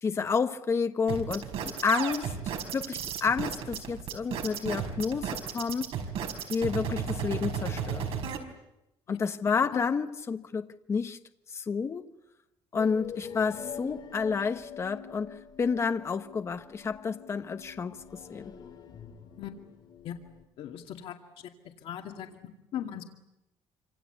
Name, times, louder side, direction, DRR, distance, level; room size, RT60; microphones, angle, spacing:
voice 1, 0.0-2.3 2.7-5.9 6.5-8.1 9.1-11.2 11.5-12.0 12.7-18.0 18.3-18.5, left 5 dB, 30° left, 1.2 m, -30 dB
sound 1, 1.1-8.4, right 7 dB, 75° right, 5.0 m, -33 dB
sound 2, 12.8-20.4, left 7 dB, 50° left, 3.0 m, -45 dB
voice 2, 20.6-21.1 21.8-22.3 22.7-23.0, left 10 dB, 70° left, 2.4 m, -38 dB
27.5 x 26.5 x 8.2 m
cardioid pair, 170°, 10 cm